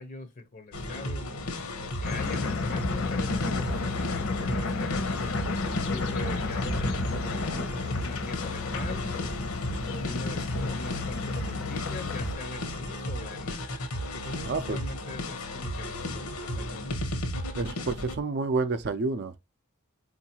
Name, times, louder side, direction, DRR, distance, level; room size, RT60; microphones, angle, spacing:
voice 1, 0.0-5.3 5.9-9.2 9.9-13.7 14.1-17.0, left 2 dB, 40° left, 0.5 m, -42 dB
sound 1, 0.7-18.1, left 1 dB, 90° left, 1.1 m, -34 dB
sound 2, 2.0-12.3, left 3 dB, 70° left, 0.8 m, -32 dB
voice 2, 14.5-14.8 17.6-19.4, right 3 dB, 50° right, 0.4 m, -29 dB
4.6 x 2.6 x 2.8 m
head